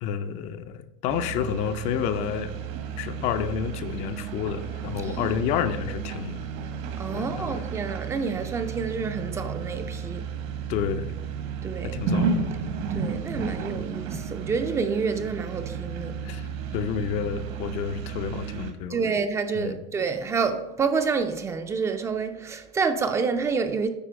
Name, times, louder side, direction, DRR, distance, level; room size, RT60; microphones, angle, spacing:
voice 1, 0.0-2.5 3.0-6.4 7.1-7.6 10.7-11.1 11.8-12.4 13.4-13.6 16.2-16.5 16.7-19.1 19.6-19.8, left 8 dB, 45° left, 0.5 m, -30 dB
sound 1, 1.1-18.7, right 6 dB, 60° right, 1.1 m, -33 dB
voice 2, 5.0-5.4 7.0-10.2 11.6-12.0 12.9-16.1 18.9-23.9, right 5 dB, 20° right, 0.4 m, -28 dB
8.9 x 4.3 x 5.1 m
supercardioid pair, 150°, 16 cm